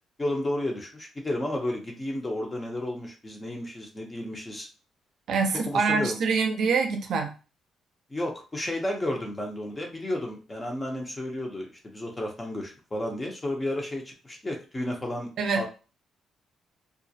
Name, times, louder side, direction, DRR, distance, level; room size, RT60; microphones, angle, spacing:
voice 1, 0.2-4.7 5.7-6.2 8.1-15.7, left 1 dB, 15° left, 1 dB, 0.5 m, -32 dB
voice 2, 5.3-7.3 15.4-15.6, right 5 dB, 65° right, 5 dB, 0.5 m, -25 dB
2.3 x 2.0 x 2.6 m, 0.33 s
cardioid pair, 150°, 0 cm